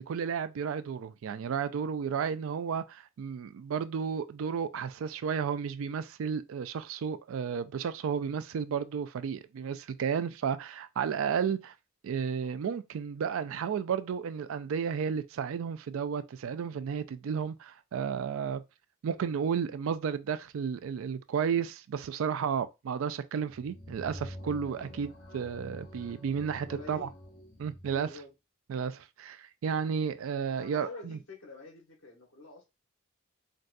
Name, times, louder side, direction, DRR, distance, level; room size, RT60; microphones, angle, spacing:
voice 1, 0.0-11.7 12.0-18.6 19.0-27.1 27.6-28.1 28.7-31.2, right 7 dB, 75° right, 0.3 m, -33 dB
sound 1, 23.5-28.0, equal, 50° left, 0.8 m, -47 dB
voice 2, 26.6-27.1 27.9-28.3 30.5-32.6, left 3 dB, 75° left, 1.3 m, -47 dB
3.9 x 2.2 x 2.5 m
head